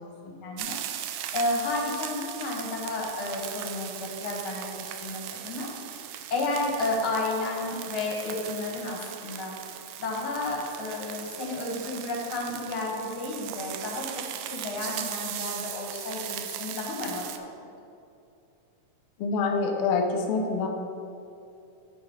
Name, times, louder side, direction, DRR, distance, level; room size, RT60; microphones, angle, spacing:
voice 1, 0.0-5.7 6.3-9.6 10.0-17.2 17.6-17.7, left 2 dB, 55° left, -2 dB, 1.7 m, -32 dB
sound 1, 0.6-17.4, right 10 dB, 80° right, 1.6 m, -38 dB
voice 2, 19.2-20.7, left 4 dB, 75° left, 2 dB, 1.3 m, -26 dB
10.5 x 4.7 x 5.4 m, 2.6 s
omnidirectional pair, 3.7 m